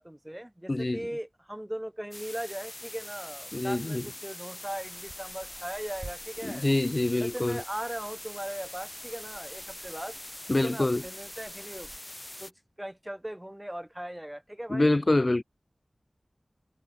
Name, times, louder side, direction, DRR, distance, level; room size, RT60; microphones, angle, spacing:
voice 1, 0.0-6.7 7.2-10.2 10.5-11.9 12.4-12.5 12.8-15.0, right 1 dB, 15° right, 1.4 m, -39 dB
voice 2, 0.7-1.0 3.5-4.0 6.4-7.6 10.5-11.0 14.7-15.4, left 2 dB, 45° left, 0.7 m, -26 dB
sound 1, 2.1-12.5, left 1 dB, 25° left, 3.3 m, -43 dB
sound 2, 4.7-12.0, right 2 dB, 50° right, 7.1 m, -52 dB
wide cardioid pair, 45°, 0 cm